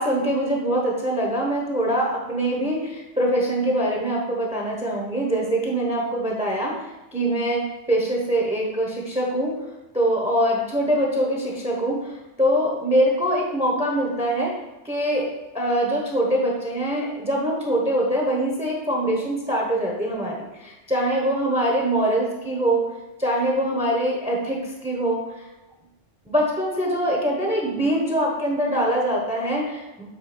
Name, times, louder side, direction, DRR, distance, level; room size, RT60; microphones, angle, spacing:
voice 1, 0.0-9.5 9.9-14.5 14.8-15.3 15.5-22.8 23.2-25.4 26.3-30.0, right 1 dB, 5° right, -1 dB, 0.8 m, -23 dB
7.4 x 3.5 x 5.0 m, 1.1 s
omnidirectional pair, 1.3 m